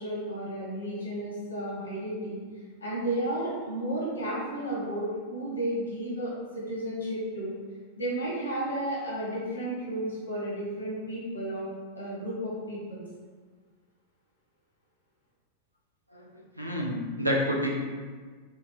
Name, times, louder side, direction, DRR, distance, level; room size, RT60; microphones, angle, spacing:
voice 1, 0.0-2.4 2.8-7.5 7.9-11.7 11.9-13.0, right 1 dB, 80° left, -6 dB, 1.4 m, -33 dB
voice 2, 16.1-17.8, equal, 85° right, -1 dB, 0.6 m, -29 dB
4.3 x 2.4 x 3.1 m, 1.5 s
figure-of-eight pair, 90°, 0 cm